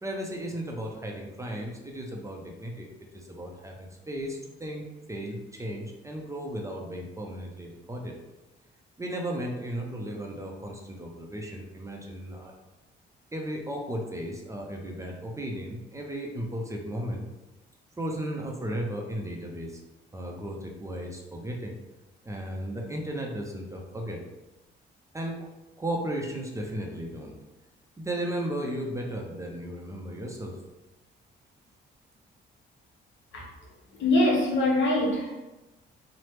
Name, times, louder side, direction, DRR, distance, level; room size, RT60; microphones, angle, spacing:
voice 1, 0.0-2.9 3.1-8.2 9.0-12.5 13.3-17.3 18.0-19.8 20.1-21.8 22.2-24.2 25.1-25.5 25.8-27.4 28.0-30.6, right 1 dB, 15° right, 0 dB, 0.4 m, -35 dB
voice 2, 34.0-35.4, left 1 dB, 70° left, -2 dB, 0.8 m, -23 dB
3.0 x 2.0 x 3.0 m, 1.1 s
cardioid pair, 90°, 20 cm